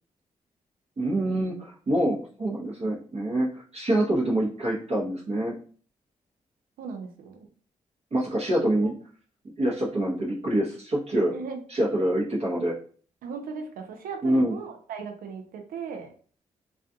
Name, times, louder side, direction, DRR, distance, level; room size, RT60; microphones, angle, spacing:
voice 1, 1.0-5.5 8.1-8.9 9.6-11.3 11.7-12.8 14.2-14.6, right 1 dB, 45° right, -4 dB, 0.8 m, -26 dB
voice 2, 6.8-7.4 11.3-11.6 13.2-16.1, right 5 dB, 80° right, 5 dB, 0.5 m, -37 dB
2.3 x 2.3 x 2.6 m, 0.43 s
supercardioid pair, 50°, 15 cm